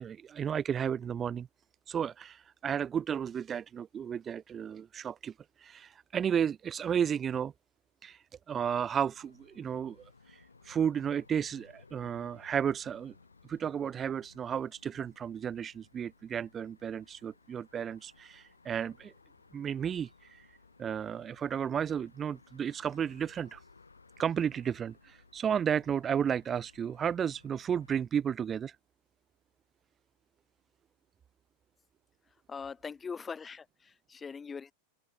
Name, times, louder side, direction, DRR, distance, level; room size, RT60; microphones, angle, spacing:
voice 1, 0.0-1.5 1.9-5.3 5.6-7.5 8.0-10.0 10.3-13.1 13.5-19.1 19.5-20.5 20.8-23.6 24.2-28.8, right 8 dB, 25° right, 0.4 m, -33 dB
sound 1, 9.1-28.0, left 4 dB, 80° left, 3.7 m, -61 dB
voice 2, 32.5-33.6 34.1-34.7, left 5 dB, 15° left, 1.5 m, -41 dB
open air
figure-of-eight pair, 90°, 0 cm